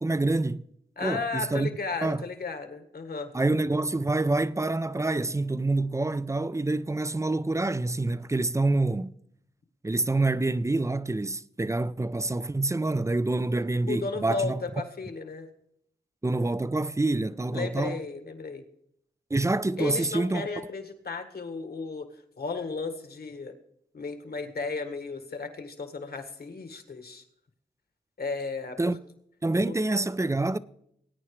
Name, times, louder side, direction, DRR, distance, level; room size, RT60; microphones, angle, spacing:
voice 1, 0.0-0.6 1.0-1.7 2.0-2.2 3.3-9.1 9.8-14.6 16.2-18.0 19.3-20.5 28.8-29.0 29.4-30.6, right 2 dB, 15° right, 0.5 m, -27 dB
voice 2, 1.0-3.3 13.9-15.5 17.5-18.6 19.8-22.1 22.4-23.5 23.9-27.2 28.2-28.9, left 4 dB, 60° left, 1.7 m, -34 dB
20.0 x 9.2 x 3.2 m
cardioid pair, 50°, 18 cm